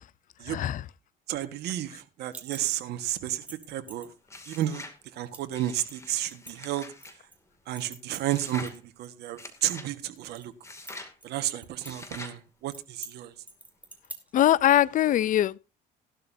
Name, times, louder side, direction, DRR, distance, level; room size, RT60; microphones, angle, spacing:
voice 1, 0.5-0.8 14.3-15.6, left 12 dB, 50° left, 0.5 m, -22 dB
voice 2, 1.3-4.1 4.5-4.8 5.1-6.9 7.7-10.5 11.2-13.3, right 13 dB, 75° right, 1.5 m, -32 dB
sound 1, 2.3-2.9 3.3-4.1 4.6-4.7 5.3-5.6 5.9-7.4 7.8-8.8 9.0-9.1 9.5-10.5 10.9-11.9 12.2-12.3 12.7-13.1 13.5-14.5, right 1 dB, 10° right, 2.5 m, -46 dB
sound 2, 4.3-5.0 5.5-7.2 8.3-8.8 9.4-9.9 10.6-11.1 11.8-12.4, left 2 dB, 15° left, 2.4 m, -44 dB
16.0 x 12.0 x 2.7 m
cardioid pair, 110°, 17 cm